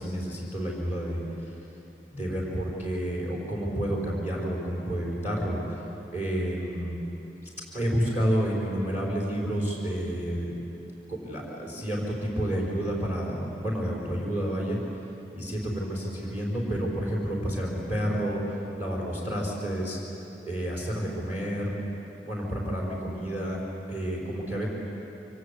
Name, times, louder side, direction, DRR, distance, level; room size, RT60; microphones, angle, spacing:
voice 1, 0.0-1.5 2.1-5.8 6.1-7.0 7.7-10.5 11.1-14.8 15.3-20.0 20.4-21.8 22.2-23.6 23.9-24.7, equal, 10° right, -3 dB, 4.8 m, -30 dB
28.0 x 25.0 x 8.5 m, 2.9 s
head